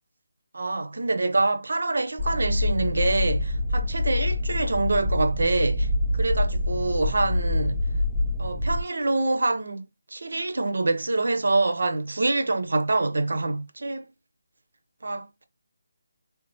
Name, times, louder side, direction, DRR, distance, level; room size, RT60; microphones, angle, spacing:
voice 1, 0.5-7.8 8.4-9.8 10.1-14.0 15.0-15.4, right 2 dB, 75° right, 0.6 m, -26 dB
sound 1, 2.2-8.8, left 2 dB, 5° right, 0.5 m, -26 dB
3.5 x 3.0 x 2.6 m
figure-of-eight pair, 170°, 0 cm